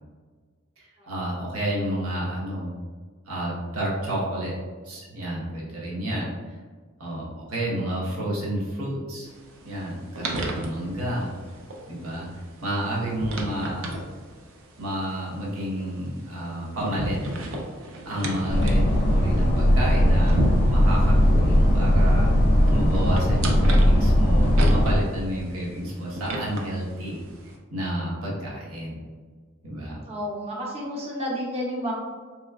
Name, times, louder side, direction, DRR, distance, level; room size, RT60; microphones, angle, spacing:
voice 1, 0.8-2.7 3.3-4.5 4.8-6.6 7.0-9.3 9.6-11.3 11.9-12.3 12.6-13.8 14.8-17.2 18.0-22.3 22.7-27.2 27.7-29.0 29.6-30.0, right 1 dB, 90° right, -5 dB, 1.1 m, -30 dB
sound 1, 9.3-27.6, right 1 dB, 70° right, 0.5 m, -35 dB
sound 2, 18.5-25.0, equal, 40° left, 0.5 m, -19 dB
voice 2, 29.8-31.9, equal, 30° right, -4 dB, 0.7 m, -31 dB
3.7 x 3.0 x 2.3 m, 1.5 s
head